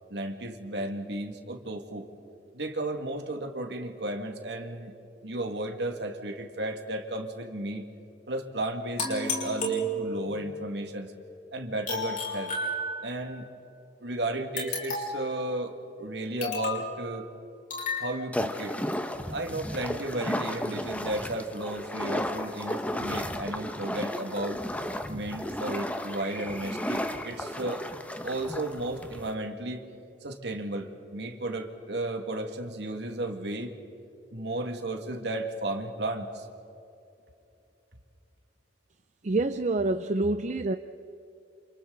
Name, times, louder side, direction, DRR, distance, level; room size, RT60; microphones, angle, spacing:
voice 1, 0.1-2.1 2.5-4.9 5.2-7.9 8.3-11.1 11.5-12.5 13.0-13.5 14.0-17.3 18.0-18.8 19.3-24.6 25.1-27.8 28.2-29.8 30.2-33.7 34.3-36.5, right 1 dB, 65° right, 5 dB, 2.1 m, -34 dB
sound 1, 9.0-10.4 11.9-13.3 14.6-15.3 16.4-16.9 17.7-18.1, left 1 dB, 45° left, 5.6 m, -32 dB
sound 2, 18.3-29.3, left 1 dB, 10° left, 1.0 m, -34 dB
voice 2, 39.2-40.8, right 2 dB, 40° right, 9 dB, 0.5 m, -27 dB
29.5 x 28.0 x 4.0 m, 2.9 s
head